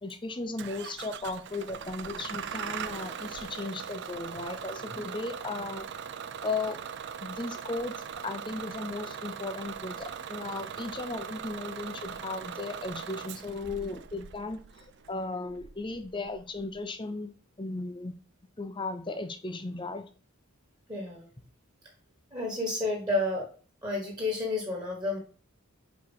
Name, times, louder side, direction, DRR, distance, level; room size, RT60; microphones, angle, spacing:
voice 1, 0.0-5.9 6.4-6.8 7.2-8.0 8.2-17.3 17.6-18.2 18.6-20.1, left 3 dB, 20° left, 8 dB, 0.7 m, -36 dB
Bus / Engine starting, 0.6-16.8, right 7 dB, 50° right, 0.4 m, -40 dB
voice 2, 20.9-21.3 22.3-23.5 23.8-25.2, left 2 dB, 20° right, 0 dB, 1.6 m, -30 dB
4.9 x 4.5 x 5.5 m, 0.40 s
head